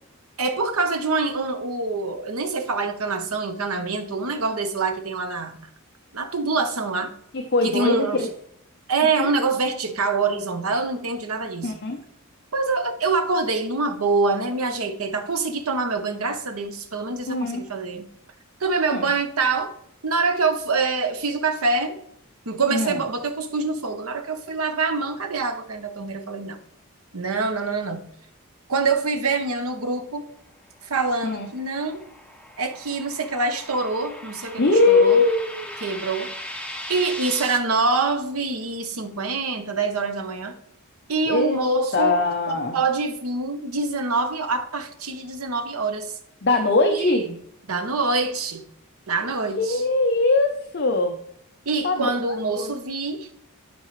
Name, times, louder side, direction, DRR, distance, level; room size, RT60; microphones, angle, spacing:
voice 1, 0.4-5.7 6.1-7.1 7.6-8.3 8.9-11.7 12.5-18.1 18.6-19.7 20.0-22.0 22.5-26.6 27.1-28.1 28.7-30.3 30.8-32.0 32.6-35.2 35.8-36.3 36.9-40.6 41.1-46.1 46.9-47.3 47.7-48.7 49.1-49.8 51.7-53.3, right 3 dB, 80° right, 1.0 m, -25 dB
voice 2, 7.3-8.3 9.2-9.3 11.6-12.0 17.3-17.7 18.9-19.1 22.7-23.0 31.2-31.5 34.6-35.7 41.3-41.6 41.9-42.8 46.4-47.3 49.6-51.2 51.8-52.7, left 3 dB, 50° left, 0.7 m, -21 dB
sound 1, 30.8-37.6, left 1 dB, 5° left, 0.6 m, -38 dB
12.0 x 4.7 x 3.2 m
head